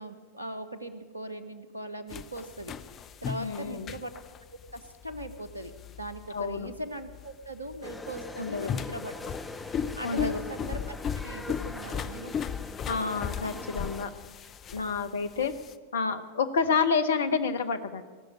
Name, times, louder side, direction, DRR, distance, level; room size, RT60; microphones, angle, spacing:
voice 1, 0.0-2.7 3.2-4.1 4.7-5.7 6.0-9.3 9.7-11.0 11.2-12.3 15.4-15.5, right 1 dB, 85° right, 11 dB, 1.1 m, -39 dB
sound 1, 2.1-15.8, left 7 dB, 30° left, 0.6 m, -37 dB
voice 2, 3.4-3.9 6.3-6.7 8.4-8.7 10.0-10.4 12.9-14.1 14.7-15.5 15.9-18.0, left 5 dB, 65° left, 9 dB, 0.8 m, -29 dB
sound 2, 7.8-14.1, left 3 dB, 10° left, 1.1 m, -42 dB
18.0 x 6.5 x 9.8 m, 1.4 s
figure-of-eight pair, 90°, 0 cm